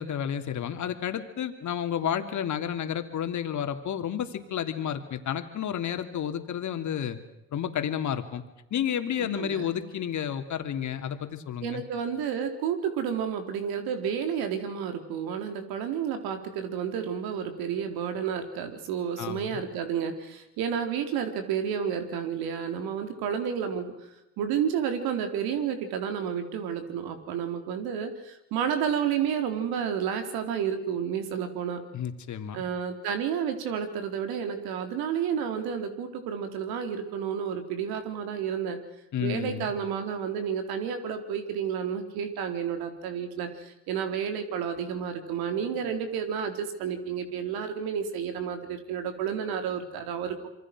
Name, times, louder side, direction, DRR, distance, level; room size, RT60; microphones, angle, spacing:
voice 1, 0.0-7.2 7.5-8.4 8.7-11.8 19.2-19.6 31.9-32.6 39.1-39.7, left 9 dB, 50° left, 7 dB, 3.1 m, -31 dB
voice 2, 9.2-9.7 11.6-23.9 24.4-31.8 32.5-38.8 39.2-50.4, right 7 dB, 75° right, 6 dB, 4.2 m, -31 dB
27.0 x 24.0 x 6.2 m, 0.91 s
supercardioid pair, 80°, 37 cm